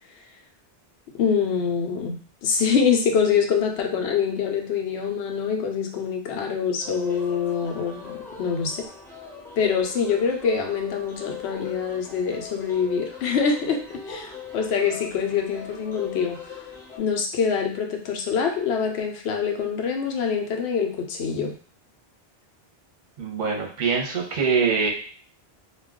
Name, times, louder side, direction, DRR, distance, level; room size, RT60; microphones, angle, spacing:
voice 1, 1.2-8.8 9.6-13.8 14.1-16.4 17.0-21.5, left 6 dB, 90° left, 3 dB, 0.8 m, -25 dB
sound 1, 6.8-17.0, left 6 dB, 5° left, 0.6 m, -40 dB
voice 2, 23.2-24.9, right 5 dB, 55° right, 0 dB, 0.8 m, -23 dB
2.3 x 2.2 x 3.5 m, 0.43 s
omnidirectional pair, 1.1 m